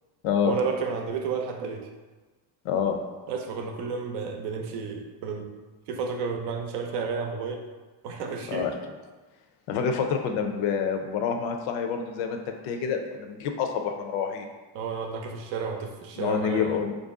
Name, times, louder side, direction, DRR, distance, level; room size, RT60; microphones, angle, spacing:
voice 1, 0.4-1.9 3.3-5.5 5.9-7.7 8.0-8.7 14.7-16.8, right 5 dB, 60° right, 3 dB, 0.6 m, -31 dB
voice 2, 2.6-3.0 8.5-8.7 9.7-14.5 16.2-16.9, left 7 dB, 70° left, 5 dB, 0.6 m, -27 dB
3.1 x 2.6 x 3.5 m, 1.3 s
cardioid pair, 140°, 46 cm